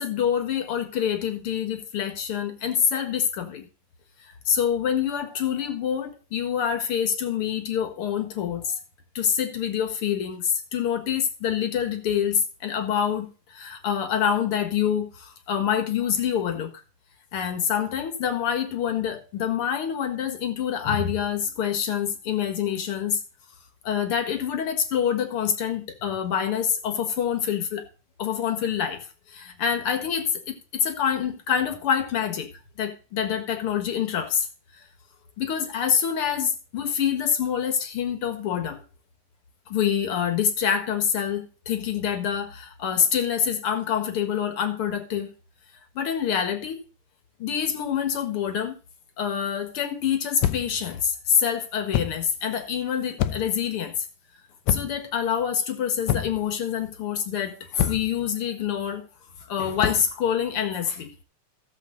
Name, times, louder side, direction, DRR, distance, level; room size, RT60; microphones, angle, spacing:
voice 1, 0.0-3.7 4.5-8.8 9.2-16.7 17.3-23.2 23.8-27.8 28.2-32.5 32.8-34.5 35.4-38.8 39.7-45.3 46.0-46.8 47.4-48.7 49.2-54.1 54.7-59.1 59.5-61.1, left 8 dB, 50° left, 7 dB, 2.0 m, -26 dB
sound 1, 50.4-50.8 51.9-52.2 53.2-53.6 54.7-55.1 56.1-56.5 57.8-58.2 59.8-60.1, left 11 dB, 75° left, 1.9 m, -26 dB
16.0 x 7.3 x 3.9 m, 0.35 s
omnidirectional pair, 3.7 m